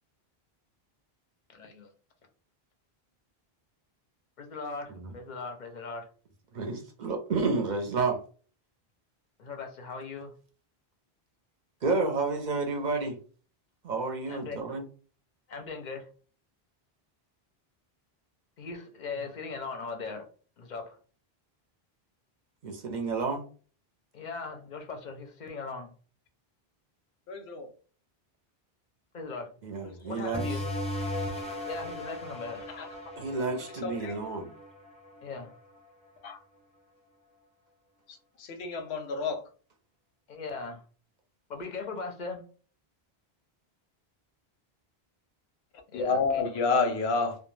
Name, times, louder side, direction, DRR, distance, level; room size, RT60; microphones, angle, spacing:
voice 1, 1.5-1.9 4.4-6.1 9.4-10.3 14.3-14.7 15.5-16.1 18.6-20.3 20.6-21.0 24.1-25.9 29.1-29.5 30.0-30.6 31.7-32.6 35.2-35.5 40.3-40.8 41.5-42.5 45.9-46.5, left 4 dB, 55° left, 0.6 m, -39 dB
voice 2, 6.5-8.2 11.8-13.2 13.8-14.8 22.6-23.4 29.6-30.5 33.2-34.5, right 3 dB, 55° right, 0.6 m, -30 dB
voice 3, 27.3-27.7 33.8-34.1 36.2-36.4 38.5-39.4 45.9-47.4, left 4 dB, 90° left, 0.9 m, -28 dB
sound 1, 30.3-35.5, left 1 dB, 10° left, 0.4 m, -37 dB
2.2 x 2.2 x 3.1 m
omnidirectional pair, 1.0 m